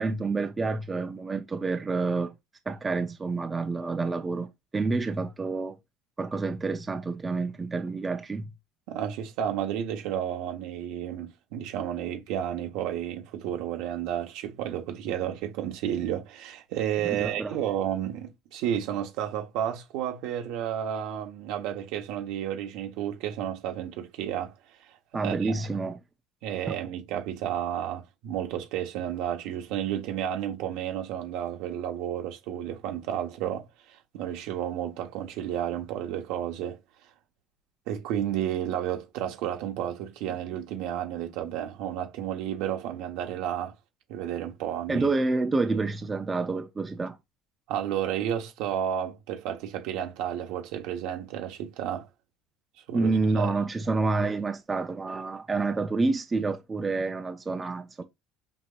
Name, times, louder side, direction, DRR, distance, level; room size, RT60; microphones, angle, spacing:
voice 1, 0.0-2.3 2.7-5.8 6.2-8.5 17.0-17.6 25.1-26.0 44.9-47.2 52.9-58.0, right 3 dB, 20° right, 0.6 m, -28 dB
voice 2, 8.9-24.5 25.1-25.5 26.4-36.8 37.9-43.7 44.1-45.1 47.7-52.1 52.9-53.5, right 10 dB, 75° right, 1.1 m, -32 dB
5.9 x 2.7 x 2.5 m
supercardioid pair, 105°, 0 cm